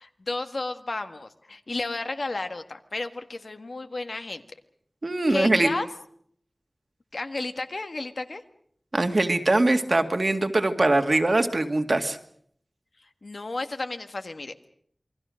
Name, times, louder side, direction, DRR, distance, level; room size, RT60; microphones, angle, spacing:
voice 1, 0.0-4.4 5.3-5.9 7.1-8.4 13.2-14.7, left 2 dB, 75° left, 8 dB, 1.6 m, -32 dB
voice 2, 5.0-5.7 8.9-12.2, right 2 dB, 55° right, 6 dB, 2.1 m, -22 dB
28.0 x 22.0 x 6.4 m, 0.65 s
wide cardioid pair, 60°, 0 cm